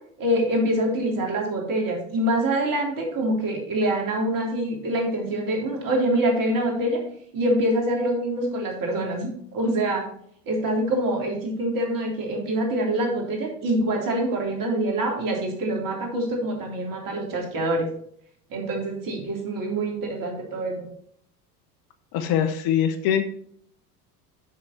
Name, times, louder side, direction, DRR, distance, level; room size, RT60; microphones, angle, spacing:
voice 1, 0.2-7.0 7.3-10.0 10.5-17.9 18.5-20.9, right 1 dB, 45° right, 0 dB, 3.3 m, -25 dB
voice 2, 22.1-23.3, left 9 dB, 50° left, 9 dB, 1.0 m, -23 dB
7.3 x 6.2 x 4.3 m, 0.65 s
hypercardioid pair, 80°, 47 cm